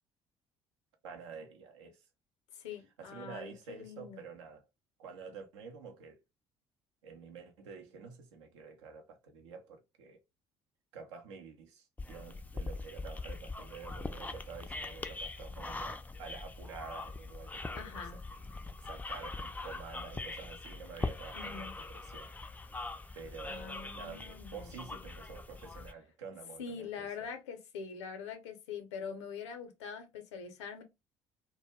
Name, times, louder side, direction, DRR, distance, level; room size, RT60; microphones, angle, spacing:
voice 1, 1.0-2.0 2.7-4.7 5.0-6.2 7.0-10.2 10.9-18.2 18.8-22.3 23.1-27.3, right 5 dB, 75° right, 0.6 m, -49 dB
voice 2, 2.6-4.2 17.7-18.2 21.3-21.7 23.5-24.7 26.6-30.8, left 6 dB, 75° left, 0.6 m, -44 dB
sound 1, 12.0-25.9, left 3 dB, 10° left, 0.3 m, -42 dB
2.2 x 2.0 x 3.3 m
figure-of-eight pair, 50°, 15 cm